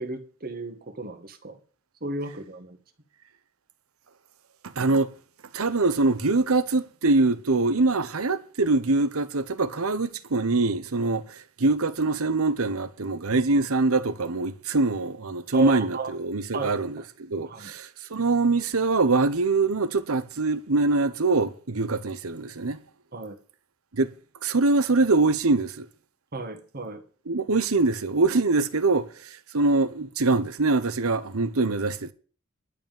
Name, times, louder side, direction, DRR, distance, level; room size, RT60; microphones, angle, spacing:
voice 1, 0.0-1.6 2.0-2.8 15.5-16.1 16.5-16.7 17.5-17.7 23.1-23.4 26.3-27.0, right 3 dB, 45° right, 1.9 m, -34 dB
voice 2, 4.8-5.1 5.5-22.8 23.9-24.1 24.4-25.9 27.3-29.1 29.5-32.1, right 3 dB, 85° right, 1.0 m, -23 dB
11.5 x 5.7 x 9.0 m
head